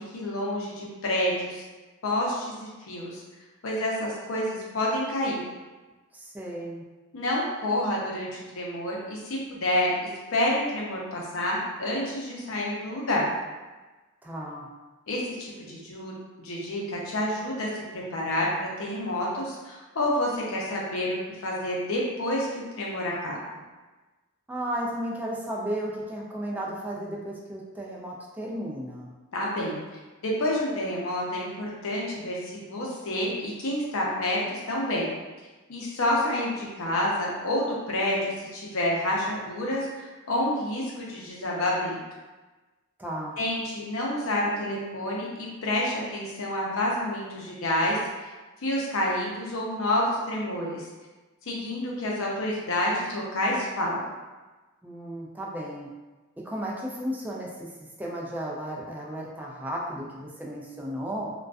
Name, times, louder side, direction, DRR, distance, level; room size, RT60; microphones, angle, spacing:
voice 1, 0.0-1.6 2.0-3.2 3.6-5.4 7.1-9.9 10.3-13.3 15.1-16.1 16.4-17.7 18.1-21.2 21.4-22.5 22.8-23.4 29.3-29.8 30.2-35.1 35.7-42.0 43.4-48.3 48.6-50.8 51.5-54.1, left 1 dB, 70° left, -4 dB, 0.6 m, -28 dB
voice 2, 6.1-6.8 14.2-14.7 24.5-29.1 43.0-43.4 54.8-55.9 56.4-57.7 58.0-61.3, equal, 10° right, -3 dB, 0.3 m, -34 dB
2.4 x 2.2 x 2.3 m, 1.2 s
head